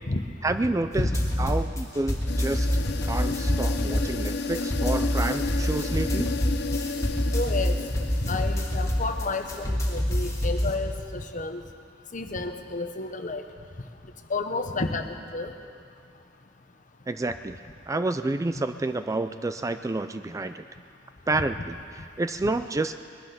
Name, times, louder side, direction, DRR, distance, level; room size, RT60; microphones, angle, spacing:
voice 1, 0.4-1.1 1.4-2.7 3.0-6.4 17.1-17.6 17.9-20.6 21.3-22.9, right 2 dB, 15° right, 10 dB, 0.4 m, -29 dB
sound 1, 0.9-10.7, equal, 15° left, 1.9 m, -27 dB
voice 2, 1.0-1.3 2.7-2.8 3.5-3.6 7.3-11.6 12.1-13.4 14.3-15.1 15.3-15.5 21.3-21.4, left 3 dB, 45° left, 6 dB, 1.0 m, -31 dB
sound 2, 2.3-9.8, left 4 dB, 60° left, 0.6 m, -33 dB
21.0 x 11.5 x 5.9 m, 2.3 s
head